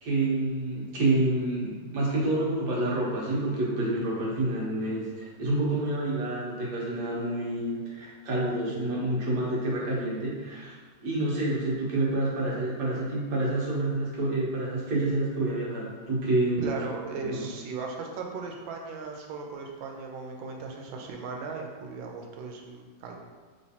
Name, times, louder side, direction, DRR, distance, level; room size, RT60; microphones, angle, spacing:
voice 1, 0.0-16.8 17.3-17.4, right 2 dB, 65° right, -4 dB, 1.4 m, -28 dB
voice 2, 16.6-23.2, right 4 dB, 85° right, 1 dB, 1.3 m, -37 dB
3.3 x 3.1 x 2.7 m, 1.5 s
omnidirectional pair, 2.1 m